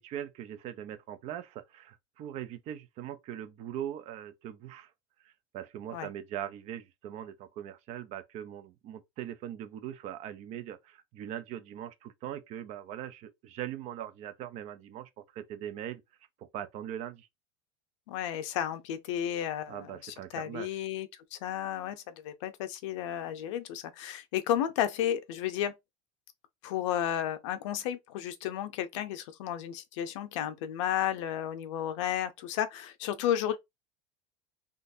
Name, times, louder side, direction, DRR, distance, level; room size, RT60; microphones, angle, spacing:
voice 1, 0.0-4.9 5.2-16.0 16.4-17.3 19.7-20.8, right 11 dB, 45° right, 0.6 m, -41 dB
voice 2, 18.1-25.7 26.6-33.6, left 10 dB, 85° left, 0.7 m, -33 dB
3.7 x 2.5 x 2.6 m
supercardioid pair, 140°, 15 cm